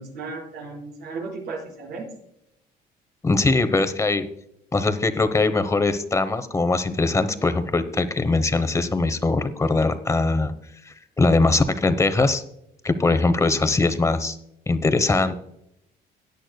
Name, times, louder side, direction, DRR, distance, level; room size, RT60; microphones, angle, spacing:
voice 1, 0.0-2.1, right 3 dB, 85° right, -6 dB, 5.0 m, -35 dB
voice 2, 3.2-4.3 4.7-10.5 11.2-12.4 12.8-14.4 14.7-15.3, left 3 dB, 15° left, 11 dB, 0.9 m, -21 dB
17.0 x 9.9 x 2.2 m, 0.78 s
cardioid pair, 110°, 17 cm